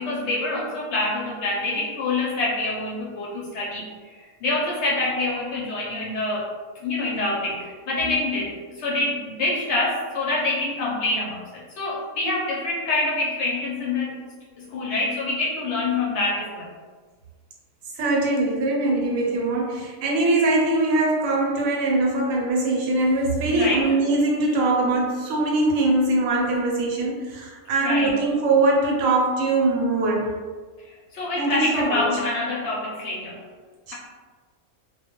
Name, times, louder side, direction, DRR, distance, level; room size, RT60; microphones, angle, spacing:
voice 1, 0.0-3.9 4.4-6.5 6.8-14.1 14.6-16.7 23.5-23.9 27.8-28.1 31.1-33.4, left 2 dB, 65° left, -4 dB, 0.8 m, -26 dB
voice 2, 18.0-30.3 31.4-32.2 33.9-34.0, right 2 dB, 80° right, -2 dB, 1.0 m, -22 dB
2.2 x 2.1 x 2.9 m, 1.4 s
omnidirectional pair, 1.4 m